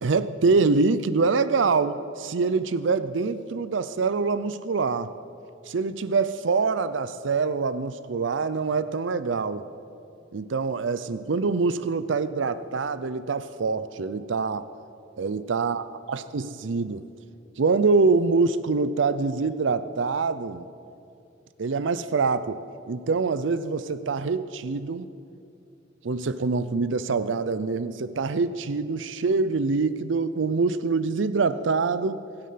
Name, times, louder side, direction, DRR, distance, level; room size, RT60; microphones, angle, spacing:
voice 1, 0.0-5.1 5.7-9.6 10.3-14.7 15.2-17.1 17.6-20.7 21.6-22.6 22.9-25.1 26.0-32.2, right 4 dB, 75° right, 14 dB, 0.5 m, -25 dB
23.5 x 8.8 x 5.7 m, 2.6 s
head